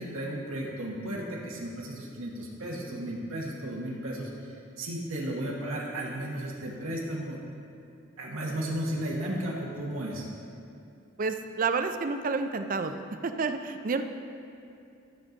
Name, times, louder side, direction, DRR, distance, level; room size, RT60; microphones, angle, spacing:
voice 1, 0.0-7.4 8.2-10.3, right 1 dB, 90° right, -4 dB, 1.4 m, -34 dB
voice 2, 11.2-12.9 13.2-14.0, right 4 dB, 40° right, 8 dB, 0.5 m, -29 dB
13.5 x 6.6 x 3.9 m, 2.6 s
head